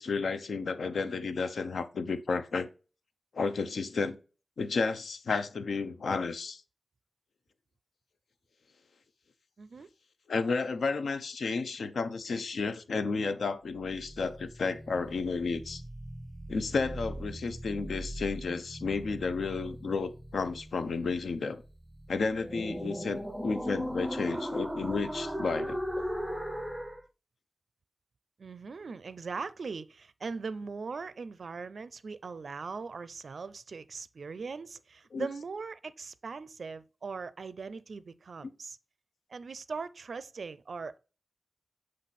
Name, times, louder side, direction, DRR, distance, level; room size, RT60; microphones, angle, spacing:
voice 1, 0.0-2.7 3.3-4.2 4.6-6.6 10.3-15.8 16.5-21.6 22.1-26.1 35.1-35.3, left 4 dB, 75° left, 0.6 m, -32 dB
voice 2, 9.6-9.9 28.4-38.8 39.3-41.0, right 4 dB, 60° right, 0.4 m, -40 dB
sound 1, 13.7-27.0, equal, 5° right, 0.5 m, -39 dB
7.5 x 3.2 x 4.1 m
wide cardioid pair, 125°, 0 cm